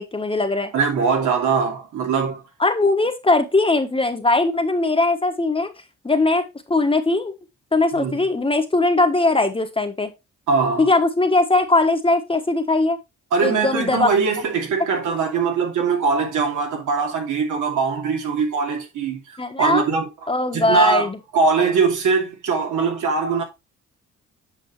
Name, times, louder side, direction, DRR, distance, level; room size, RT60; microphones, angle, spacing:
voice 1, 0.0-0.7 2.6-5.7 6.0-6.4 6.7-7.3 7.7-10.1 10.8-13.0 13.4-14.1 19.4-19.8 20.3-21.2, left 2 dB, 20° left, 1.4 m, -20 dB
voice 2, 0.7-2.4 7.9-8.2 10.5-10.9 13.3-19.2 19.6-20.1 20.5-21.1 21.3-23.4, right 5 dB, 80° right, 2.7 m, -21 dB
8.9 x 5.5 x 3.3 m
cardioid pair, 90°, 30 cm